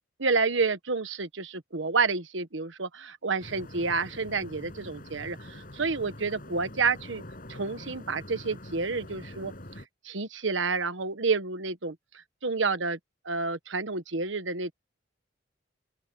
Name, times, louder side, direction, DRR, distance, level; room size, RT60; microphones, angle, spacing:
voice 1, 0.2-7.2 7.5-9.5 10.0-13.0 13.2-14.7, right 4 dB, 80° right, 1.3 m, -29 dB
sound 1, 3.4-9.9, left 1 dB, 50° left, 6.7 m, -45 dB
open air
head